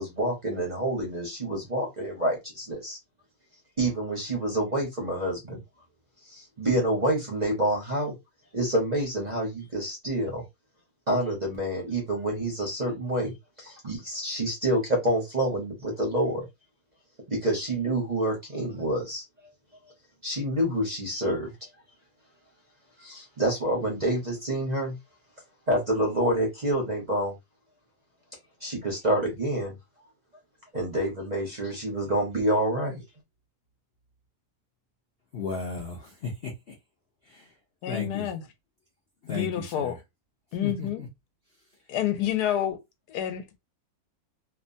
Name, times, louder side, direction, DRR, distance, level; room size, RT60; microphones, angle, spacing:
voice 1, 0.0-3.0 3.8-5.6 6.2-8.1 8.5-10.4 11.1-13.3 13.6-16.4 17.3-19.2 20.2-21.5 23.0-25.0 25.7-27.3 28.6-29.7 30.7-33.0, right 1 dB, 40° right, 0.6 m, -27 dB
voice 2, 35.3-36.7 37.3-37.5 37.9-38.3 39.2-40.0 40.6-41.1, left 4 dB, 60° left, 0.6 m, -35 dB
voice 3, 37.8-38.4 39.3-39.9 40.5-41.0 41.9-42.8 43.1-43.6, left 10 dB, 80° left, 1.1 m, -28 dB
2.9 x 2.2 x 2.6 m
omnidirectional pair, 1.7 m